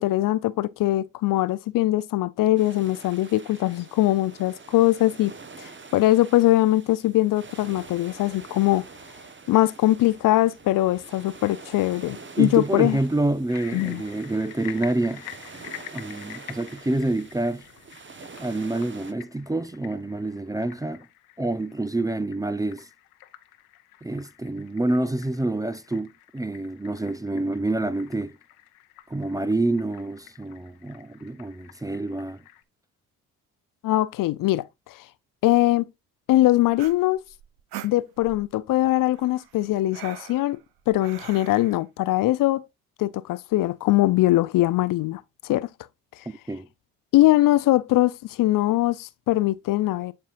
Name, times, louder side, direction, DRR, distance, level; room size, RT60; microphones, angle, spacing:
voice 1, 0.0-5.3 5.6-8.8 9.5-13.0 13.7-14.0 33.8-35.0 35.4-35.8 36.3-37.2 37.8-40.6 40.9-42.6 43.0-45.7 47.1-50.1, left 16 dB, 50° left, 0.6 m, -22 dB
sound 1, 2.6-19.1, right 4 dB, 25° right, 1.3 m, -46 dB
voice 2, 12.3-15.3 15.9-17.6 18.4-21.1 21.4-22.9 24.0-28.3 29.1-32.4 46.5-46.7, right 2 dB, 10° right, 0.5 m, -27 dB
sound 2, 13.5-32.6, left 15 dB, 80° left, 0.8 m, -47 dB
sound 3, 36.7-38.5 39.1-41.8, right 12 dB, 60° right, 0.8 m, -42 dB
11.0 x 4.3 x 2.6 m
hypercardioid pair, 45°, 42 cm